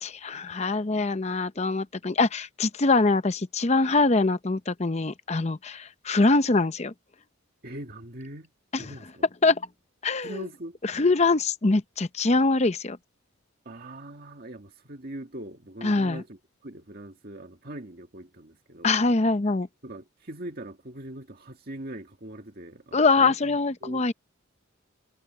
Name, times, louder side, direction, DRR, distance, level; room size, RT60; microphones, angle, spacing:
voice 1, 0.0-6.9 8.7-8.8 9.4-9.6 10.0-10.4 10.8-13.0 15.8-16.2 18.8-19.7 22.9-24.1, left 3 dB, 35° left, 0.7 m, -23 dB
voice 2, 7.6-8.5 8.8-9.3 10.2-10.8 13.7-19.0 19.8-24.1, right 1 dB, 50° right, 2.0 m, -41 dB
head